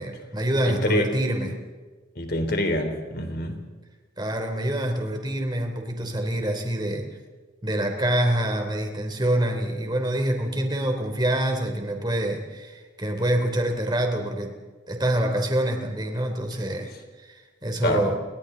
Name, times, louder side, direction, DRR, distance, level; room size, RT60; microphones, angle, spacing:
voice 1, 0.0-1.6 4.2-7.1 7.6-14.5 14.9-16.9 17.2-18.2, right 1 dB, 20° right, 4 dB, 3.2 m, -26 dB
voice 2, 0.7-1.1 2.2-3.6 17.8-18.1, left 1 dB, 50° left, 5 dB, 3.7 m, -25 dB
30.0 x 24.0 x 3.9 m, 1.4 s
head